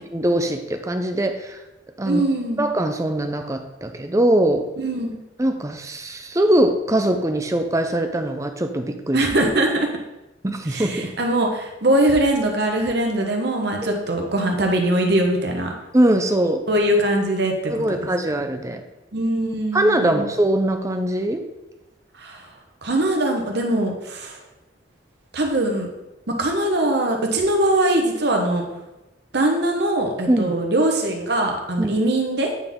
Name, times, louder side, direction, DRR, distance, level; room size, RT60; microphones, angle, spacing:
voice 1, 0.1-1.6 2.0-2.2 2.6-4.6 5.4-9.2 10.4-11.1 13.8-14.0 15.9-16.6 17.7-18.8 19.7-21.4 30.3-30.5 31.8-31.9, right 1 dB, 15° right, 6 dB, 0.5 m, -21 dB
voice 2, 2.0-2.7 4.8-5.2 9.1-9.9 10.7-15.7 16.7-18.1 19.1-20.2 22.2-22.5 22.8-24.4 25.3-25.9 26.3-28.6 29.3-32.5, right 1 dB, 60° right, 2 dB, 1.1 m, -22 dB
8.9 x 4.1 x 3.6 m, 0.97 s
head